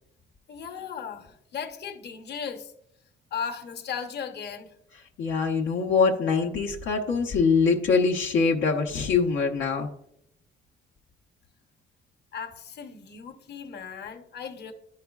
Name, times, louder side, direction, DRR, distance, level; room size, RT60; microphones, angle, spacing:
voice 1, 0.5-2.7 3.3-4.7 12.3-14.7, left 7 dB, 55° left, 4 dB, 0.9 m, -36 dB
voice 2, 5.2-9.9, left 5 dB, 85° left, 0 dB, 0.7 m, -23 dB
10.5 x 4.8 x 2.3 m, 0.74 s
cardioid pair, 90°, 20 cm